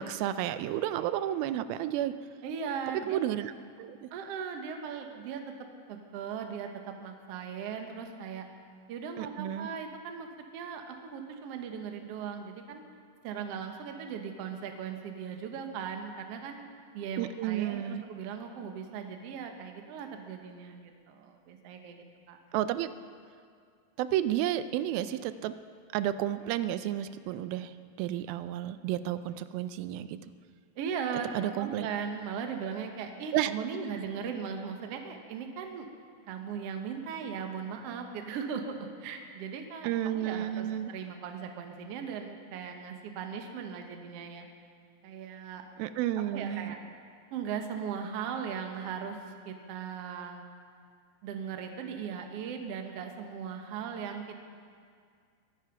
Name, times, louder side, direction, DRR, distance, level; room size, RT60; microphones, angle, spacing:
voice 1, 0.0-2.1 3.1-3.5 3.8-4.1 9.2-9.7 17.2-18.0 22.5-22.9 24.0-25.5 25.9-30.3 31.3-31.9 33.3-33.5 39.8-40.9 45.8-46.8, right 12 dB, 90° right, 13 dB, 2.4 m, -31 dB
voice 2, 2.4-3.2 4.1-5.4 5.9-6.7 7.0-8.4 8.9-10.3 10.5-12.8 13.2-16.6 16.9-22.4 30.7-31.3 31.6-35.9 36.3-44.5 45.0-45.7 46.3-46.8 47.3-49.2 49.4-50.4 51.2-54.4, right 7 dB, 65° right, 4 dB, 1.6 m, -38 dB
23.0 x 9.0 x 5.8 m, 2.1 s
omnidirectional pair, 4.1 m